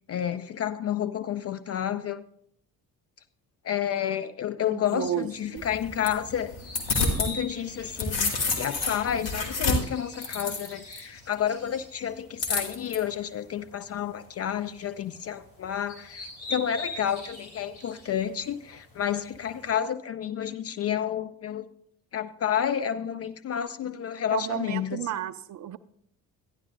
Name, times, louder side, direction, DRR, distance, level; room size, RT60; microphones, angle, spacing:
voice 1, 0.1-2.2 3.6-6.6 7.0-21.7 22.1-25.0, left 9 dB, 35° left, 0.4 m, -30 dB
voice 2, 4.7-5.6 24.3-25.8, right 11 dB, 40° right, 0.5 m, -32 dB
sound 1, 4.9-19.7, left 2 dB, 75° left, 2.9 m, -45 dB
sound 2, 5.6-7.3 7.7-11.0 12.4-13.0, left 3 dB, 55° left, 2.1 m, -29 dB
12.0 x 10.5 x 2.5 m
hypercardioid pair, 50°, 49 cm